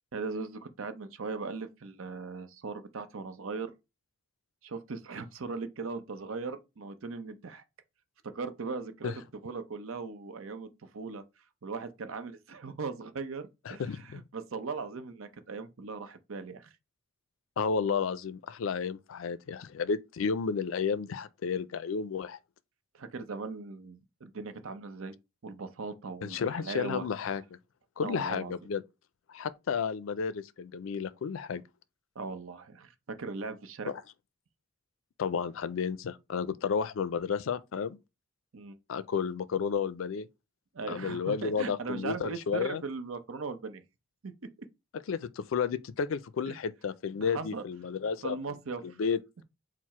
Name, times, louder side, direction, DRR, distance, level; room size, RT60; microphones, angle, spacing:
voice 1, 0.1-3.7 4.6-7.6 8.2-9.1 9.4-11.2 11.6-16.7 22.9-25.1 25.4-27.1 28.0-28.5 32.2-33.9 38.5-38.8 40.7-43.8 44.2-44.3 46.5-46.6 47.2-47.6 48.2-49.0, right 4 dB, 80° right, 0.6 m, -39 dB
voice 2, 13.7-14.2 17.6-22.4 26.2-27.4 28.0-28.8 29.3-31.6 33.9-34.0 35.2-38.0 38.9-40.3 40.9-42.8 45.1-48.4 49.0-49.4, left 6 dB, 70° left, 0.4 m, -32 dB
4.6 x 2.0 x 4.2 m
head